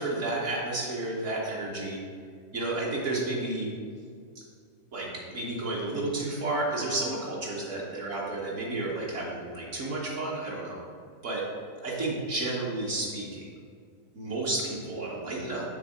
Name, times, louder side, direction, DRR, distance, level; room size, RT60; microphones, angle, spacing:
voice 1, 0.0-2.0 2.5-3.7 4.9-10.8 11.2-11.4 11.8-13.5 14.1-15.6, right 2 dB, 60° right, -4 dB, 1.2 m, -31 dB
7.2 x 3.1 x 4.9 m, 2.1 s
omnidirectional pair, 1.5 m